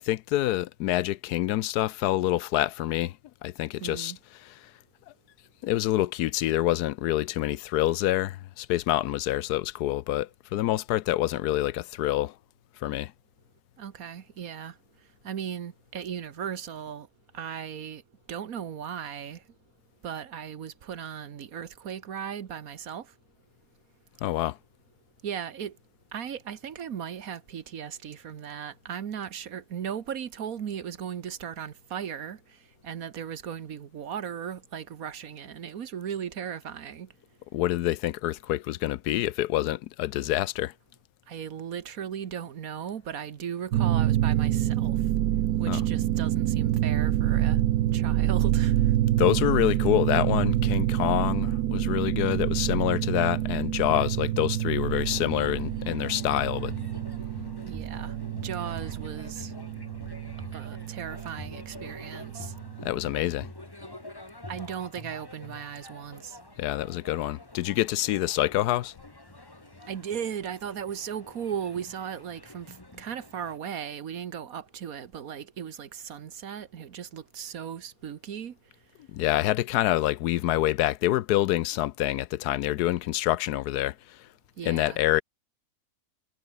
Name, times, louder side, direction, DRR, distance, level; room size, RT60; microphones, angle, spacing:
voice 1, 0.0-3.2 3.4-4.1 5.6-12.3 12.8-13.1 24.2-24.6 37.5-40.7 45.7-45.8 49.2-56.7 62.8-63.5 66.6-68.9 79.1-83.9 84.6-85.2, left 14 dB, 85° left, 1.2 m, -26 dB
voice 2, 3.8-4.2 13.8-14.8 15.2-17.1 17.3-18.0 18.3-19.4 20.0-23.1 25.2-25.8 26.1-32.6 32.8-37.1 41.3-45.0 45.6-47.6 47.9-48.8 57.6-58.2 58.4-59.5 60.5-62.5 64.5-66.4 69.9-78.6 84.6-85.0, right 8 dB, 65° right, 1.5 m, -37 dB
sound 1, 43.7-63.2, right 12 dB, 85° right, 1.3 m, -27 dB
sound 2, 54.9-73.6, left 1 dB, 15° left, 2.2 m, -46 dB
omnidirectional pair, 1.6 m